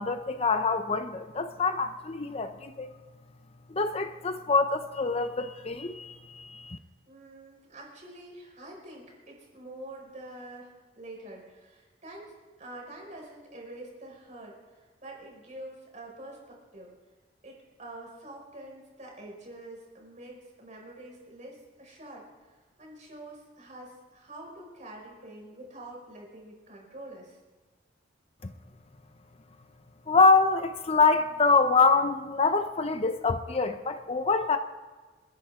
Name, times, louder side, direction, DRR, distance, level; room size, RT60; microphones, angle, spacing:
voice 1, 0.0-2.9 3.7-6.8 28.4-28.5 30.1-34.6, left 4 dB, 35° left, 8 dB, 0.7 m, -25 dB
voice 2, 7.1-12.3 12.6-16.9 17.4-22.2 22.8-27.4, right 1 dB, 40° right, -1 dB, 5.6 m, -46 dB
30.0 x 11.0 x 3.7 m, 1.4 s
head